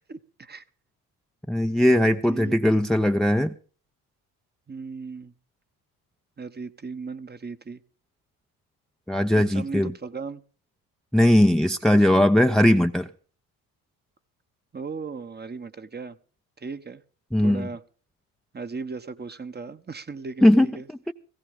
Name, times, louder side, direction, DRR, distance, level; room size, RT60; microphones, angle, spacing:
voice 1, 0.1-0.6 2.3-2.6 4.7-5.3 6.4-7.8 9.3-10.4 14.7-16.2 16.6-17.0 17.4-17.8 18.5-21.1, right 4 dB, 25° right, 1.1 m, -37 dB
voice 2, 1.5-3.5 9.1-9.9 11.1-13.1 17.3-17.7 20.4-20.7, left 1 dB, ahead, 0.7 m, -19 dB
18.0 x 16.0 x 3.7 m
supercardioid pair, 65°, 42 cm